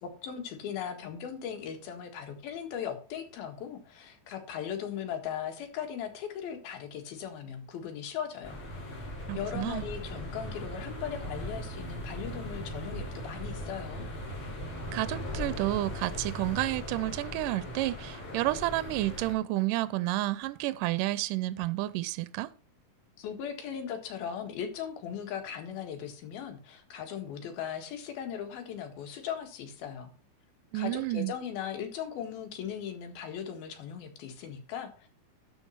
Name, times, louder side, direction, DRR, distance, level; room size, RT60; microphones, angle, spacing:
voice 1, 0.0-8.6 8.9-9.0 9.3-14.1 23.2-30.1 30.7-35.1, left 8 dB, 80° left, 3.6 m, -38 dB
sound 1, 8.4-19.3, equal, 35° left, 4.8 m, -39 dB
voice 2, 9.3-9.9 14.9-22.5 30.7-31.3, right 17 dB, 80° right, 2.0 m, -30 dB
12.0 x 5.3 x 5.6 m
omnidirectional pair, 4.2 m